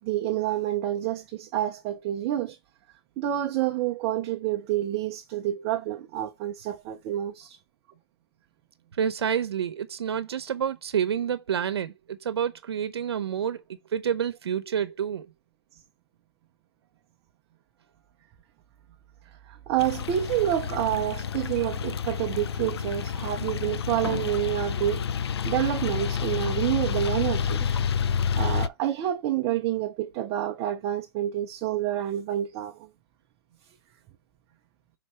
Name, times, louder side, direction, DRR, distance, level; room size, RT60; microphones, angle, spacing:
voice 1, 0.0-2.6 3.2-7.6 19.5-25.0 25.4-27.7 28.3-32.9, right 12 dB, 20° right, 0.4 m, -28 dB
voice 2, 9.0-13.6 13.9-15.3, right 8 dB, 75° right, 0.7 m, -28 dB
sound 1, 19.8-28.7, left 7 dB, 80° left, 0.4 m, -29 dB
5.5 x 3.7 x 4.7 m
hypercardioid pair, 165°, 13 cm